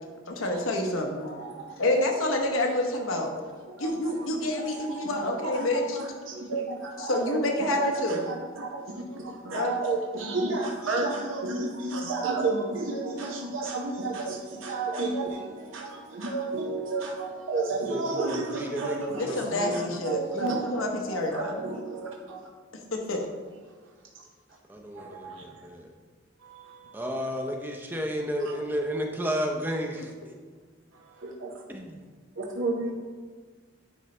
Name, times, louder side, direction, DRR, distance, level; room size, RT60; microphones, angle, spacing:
voice 1, 0.4-1.3 1.8-3.3 3.8-6.1 7.0-8.3 9.5-9.7 19.1-21.6 22.9-23.3, left 1 dB, 90° left, 2 dB, 1.0 m, -28 dB
voice 2, 1.2-1.6 2.1-2.2 3.8-3.9 4.6-19.4 19.7-20.8 21.1-22.4 25.0-25.5 26.4-26.9 28.5-28.6 31.2-31.5 32.6-32.9, right 3 dB, 80° right, 0 dB, 0.7 m, -32 dB
voice 3, 17.9-20.0 24.7-25.9 26.9-30.1, equal, 10° right, 2 dB, 0.5 m, -32 dB
9.8 x 3.9 x 3.3 m, 1.5 s
head